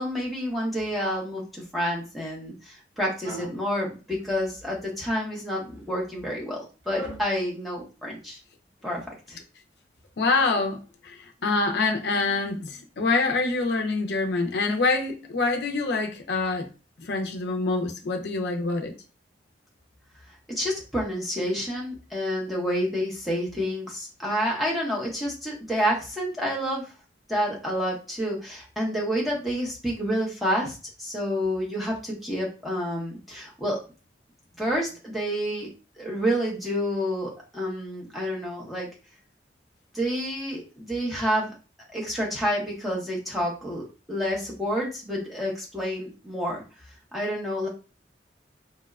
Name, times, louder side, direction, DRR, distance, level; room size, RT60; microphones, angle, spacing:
voice 1, 0.0-8.4 8.8-9.0 9.3-9.4 20.5-26.9 27.3-33.8 34.6-35.7 36.0-38.9 39.9-41.5 41.9-46.6 47.1-47.7, equal, ahead, 0.6 m, -29 dB
sound 1, 3.2-3.6 4.2-4.9 5.6-5.9 6.8-7.3, equal, 85° right, 0.8 m, -40 dB
voice 2, 10.2-16.7 17.0-18.9, left 3 dB, 65° left, 0.4 m, -26 dB
2.8 x 2.1 x 2.3 m
head